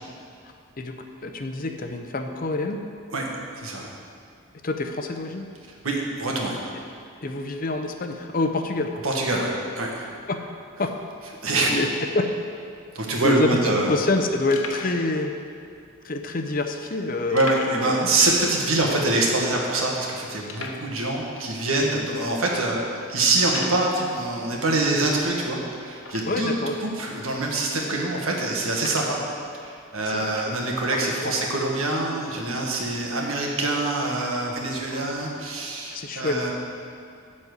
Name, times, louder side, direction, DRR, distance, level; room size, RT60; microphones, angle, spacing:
voice 1, 1.2-2.8 4.6-5.5 7.2-8.9 10.3-10.4 10.8-10.9 11.7-11.9 12.1-12.2 13.2-13.6 13.9-15.3 16.0-18.1 22.0-22.1 26.3-26.8 30.0-30.6 30.9-31.4 34.9-35.1 35.9-36.5, left 2 dB, 40° left, 5 dB, 0.6 m, -27 dB
voice 2, 3.5-3.9 5.8-6.7 9.0-9.5 9.7-10.1 11.4-11.7 12.9-13.9 17.3-22.8 23.1-26.5 26.8-29.2 29.6-36.5, right 2 dB, 85° right, -1 dB, 1.7 m, -25 dB
sound 1, 14.5-15.0 15.8-15.9 17.4-17.9 18.2-18.3 18.8-18.9 19.5-19.6 20.5-20.9 21.7-21.8 22.4-22.5 23.4-23.9 26.0-26.6 27.3-27.4 28.7-29.2, left 4 dB, 75° left, 1.0 m, -37 dB
12.0 x 4.3 x 8.1 m, 2.3 s
head